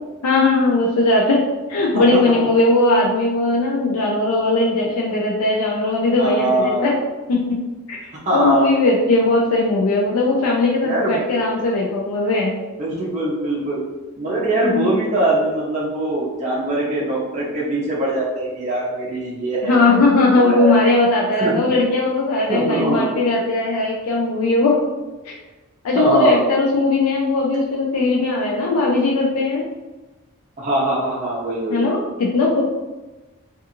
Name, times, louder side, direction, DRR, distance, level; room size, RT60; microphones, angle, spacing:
voice 1, 0.2-6.9 7.3-7.6 7.9-12.6 14.6-15.0 19.6-24.8 25.3-25.4 25.8-29.6 31.7-32.6, left 2 dB, 80° left, -2 dB, 0.4 m, -19 dB
voice 2, 1.9-2.5 6.2-6.9 8.2-8.7 10.8-11.5 12.8-13.8 14.2-20.8 21.4-21.5 22.5-23.1 25.9-26.4 30.6-31.9, right 1 dB, 35° right, -5 dB, 0.5 m, -22 dB
2.4 x 2.4 x 2.8 m, 1.2 s
head